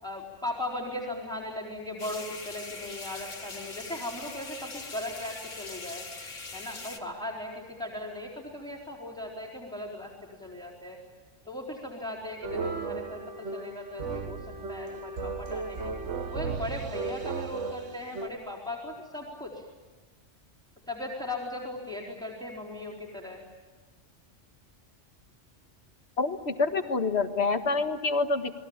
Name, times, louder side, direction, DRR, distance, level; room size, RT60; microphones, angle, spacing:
voice 1, 0.0-6.1 6.5-10.1 10.4-11.0 11.5-15.9 16.3-19.6 20.9-23.4, left 1 dB, 5° left, -2 dB, 4.2 m, -38 dB
sound 1, 2.0-7.0, left 3 dB, 85° left, 2.4 m, -42 dB
sound 2, 12.4-18.3, right 4 dB, 75° right, 1.6 m, -35 dB
voice 2, 26.2-28.5, left 3 dB, 60° left, 7 dB, 1.9 m, -27 dB
29.5 x 21.0 x 8.8 m, 1.2 s
omnidirectional pair, 1.3 m